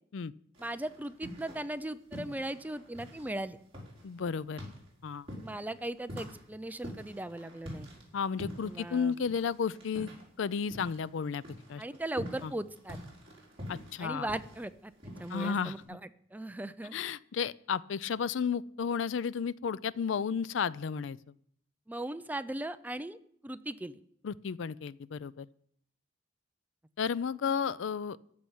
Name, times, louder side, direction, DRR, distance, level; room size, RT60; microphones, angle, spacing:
sound 1, 0.5-1.8 2.1-11.1 11.4-15.8, equal, 30° right, 4.7 m, -46 dB
voice 1, 0.6-3.6 5.4-7.9 8.6-9.2 11.8-13.0 14.0-14.9 15.2-16.9 21.9-23.2 23.4-24.0, right 1 dB, 10° right, 12 dB, 0.4 m, -38 dB
voice 2, 4.0-4.6 5.0-5.3 8.1-10.1 10.4-11.4 11.7-11.8 12.4-12.5 13.7-14.3 15.3-15.7 16.9-21.2 24.2-25.5 27.0-28.2, left 6 dB, 75° left, 19 dB, 0.4 m, -33 dB
14.5 x 5.7 x 9.6 m, 0.68 s
head